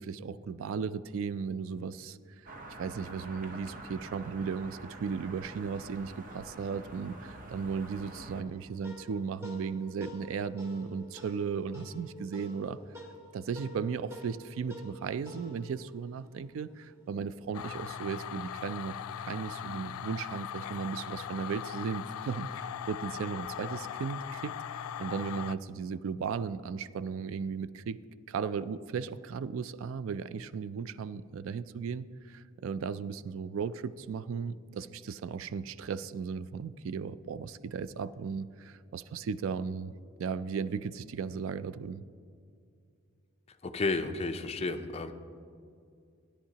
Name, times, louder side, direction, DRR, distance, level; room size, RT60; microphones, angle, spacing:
voice 1, 0.0-2.2 2.8-12.8 13.3-28.0 28.3-39.9 40.2-42.0, right 6 dB, 70° right, 16 dB, 0.3 m, -36 dB
sound 1, 2.5-8.4, right 2 dB, 40° right, 0.8 m, -47 dB
sound 2, 8.4-17.2, equal, 15° right, 2.2 m, -49 dB
sound 3, 17.5-25.6, left 9 dB, 90° left, 0.3 m, -40 dB
voice 2, 43.6-45.1, left 3 dB, 30° left, 7 dB, 0.5 m, -32 dB
16.0 x 10.0 x 2.8 m, 2.3 s
head